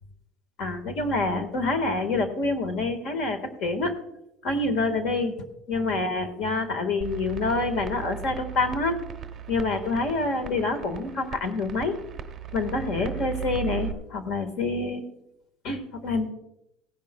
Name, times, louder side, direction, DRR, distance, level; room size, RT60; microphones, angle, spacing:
voice 1, 0.6-3.9 4.4-9.0 9.5-12.0 12.5-15.0 15.6-16.3, left 3 dB, 45° left, 8 dB, 1.5 m, -27 dB
sound 1, 7.0-13.9, right 9 dB, 20° right, 0.8 m, -37 dB
17.0 x 10.5 x 2.2 m, 0.83 s
cardioid pair, 180°, 0 cm